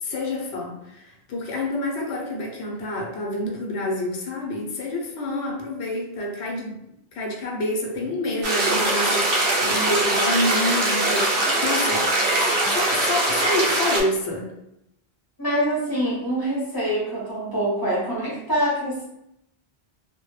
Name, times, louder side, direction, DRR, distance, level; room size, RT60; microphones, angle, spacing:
voice 1, 0.0-6.8 7.1-14.6, left 1 dB, 85° left, 0 dB, 0.9 m, -28 dB
sound 1, 8.4-14.0, right 2 dB, 85° right, 0.9 m, -22 dB
voice 2, 15.4-19.1, equal, 25° left, -6 dB, 0.7 m, -25 dB
2.1 x 2.1 x 3.0 m, 0.80 s
omnidirectional pair, 1.1 m